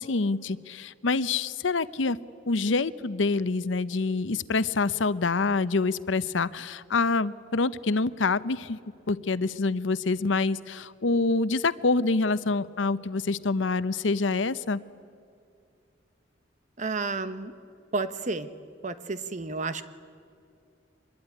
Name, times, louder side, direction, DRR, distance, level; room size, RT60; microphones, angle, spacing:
voice 1, 0.0-2.2 2.5-8.8 9.1-14.8, left 3 dB, 85° left, 15 dB, 0.8 m, -26 dB
voice 2, 16.8-17.5 17.9-18.5 18.8-19.8, right 3 dB, 40° right, 12 dB, 1.1 m, -31 dB
24.5 x 21.0 x 9.8 m, 2.4 s
head